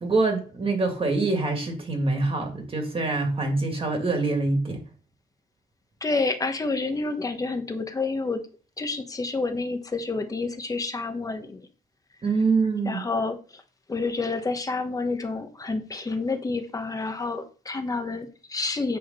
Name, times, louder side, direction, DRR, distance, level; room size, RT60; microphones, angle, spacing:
voice 1, 0.0-4.8 12.2-13.0, right 3 dB, 30° right, 1.9 m, -25 dB
voice 2, 6.0-8.4 8.8-11.6 12.8-13.6 13.9-19.0, left 3 dB, 20° left, 1.2 m, -29 dB
8.8 x 5.0 x 5.4 m
wide cardioid pair, 155°, 18 cm